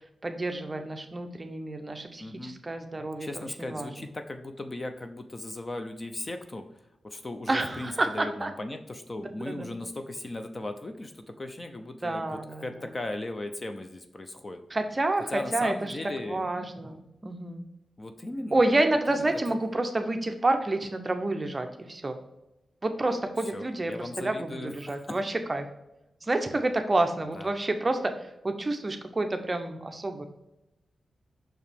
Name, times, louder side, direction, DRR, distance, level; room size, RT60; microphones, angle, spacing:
voice 1, 0.2-3.9 7.5-8.5 9.2-9.7 12.0-12.6 14.7-16.0 16.3-17.6 18.5-22.2 22.8-25.7 26.2-28.1 28.4-30.2, right 2 dB, 25° right, 6 dB, 0.6 m, -29 dB
voice 2, 2.2-2.6 3.2-6.6 7.0-14.6 15.3-16.4 18.0-18.6 19.1-19.4 23.5-25.2 27.3-27.5, left 2 dB, 25° left, 7 dB, 0.5 m, -37 dB
5.9 x 4.6 x 3.5 m, 0.92 s
wide cardioid pair, 140°, 0 cm